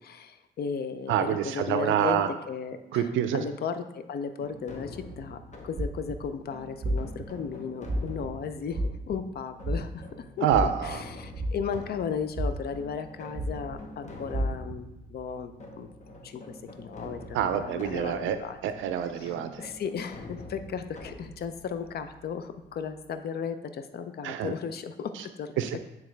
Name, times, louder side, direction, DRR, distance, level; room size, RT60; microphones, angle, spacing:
voice 1, 0.0-15.9 16.2-18.6 19.2-25.5, left 6 dB, 55° left, 10 dB, 0.5 m, -35 dB
voice 2, 1.1-2.3 2.9-3.4 10.4-11.0 17.3-18.4 18.6-19.7 24.2-24.5 25.6-25.8, right 9 dB, 80° right, 9 dB, 0.4 m, -27 dB
sound 1, 4.4-23.1, left 1 dB, 35° left, 1.1 m, -46 dB
sound 2, 5.8-6.3 6.8-7.3 7.8-8.3 8.7-9.1 9.6-10.1 10.5-10.9 11.4-12.0 12.3-12.8 13.3-13.8 14.3-14.8, right 1 dB, 35° right, 0.8 m, -29 dB
8.5 x 3.5 x 3.3 m, 0.91 s
cardioid pair, 90°, 20 cm